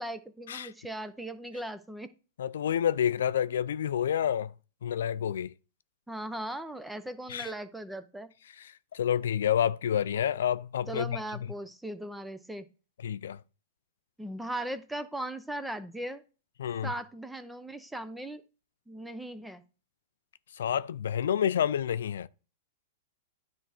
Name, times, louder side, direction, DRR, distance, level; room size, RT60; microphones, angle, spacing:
voice 1, 0.0-2.1 6.1-8.3 10.9-12.7 14.2-16.2 16.8-18.4 18.9-19.6, right 1 dB, 5° right, 0.7 m, -38 dB
voice 2, 2.4-4.5 4.8-5.5 7.3-7.5 8.9-11.2 13.0-13.4 16.6-16.9 20.6-22.3, left 9 dB, 75° left, 0.4 m, -28 dB
9.8 x 3.4 x 4.4 m
hypercardioid pair, 120°, 0 cm